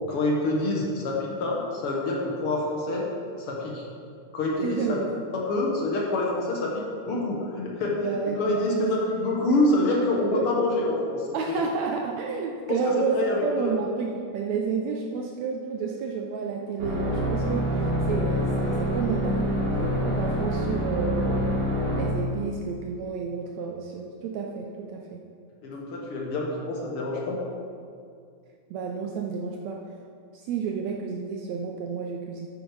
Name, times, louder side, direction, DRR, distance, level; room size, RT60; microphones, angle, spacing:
voice 1, 0.1-3.1 3.4-3.8 4.3-5.0 5.3-11.6 12.7-13.7 25.6-27.4, left 2 dB, 60° left, -2 dB, 1.7 m, -27 dB
voice 2, 4.6-5.1 5.6-5.7 8.0-8.9 10.3-10.5 11.3-21.6 22.0-25.2 28.7-29.8 30.3-32.5, right 5 dB, 75° right, 1 dB, 1.7 m, -30 dB
sound 1, 16.8-22.2, equal, 60° right, 3.1 m, -26 dB
8.7 x 8.1 x 4.7 m, 2.3 s
omnidirectional pair, 3.6 m